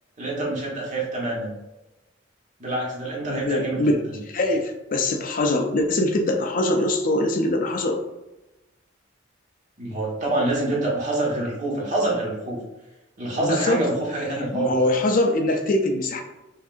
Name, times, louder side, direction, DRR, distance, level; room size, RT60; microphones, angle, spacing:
voice 1, 0.2-1.5 2.6-4.2 9.8-12.6 13.2-14.7, right 2 dB, 40° right, -4 dB, 1.3 m, -26 dB
voice 2, 3.3-3.9 4.3-8.0 13.4-13.8 14.5-16.2, left 1 dB, 45° left, 4 dB, 0.4 m, -23 dB
5.6 x 2.7 x 2.5 m, 1.0 s
head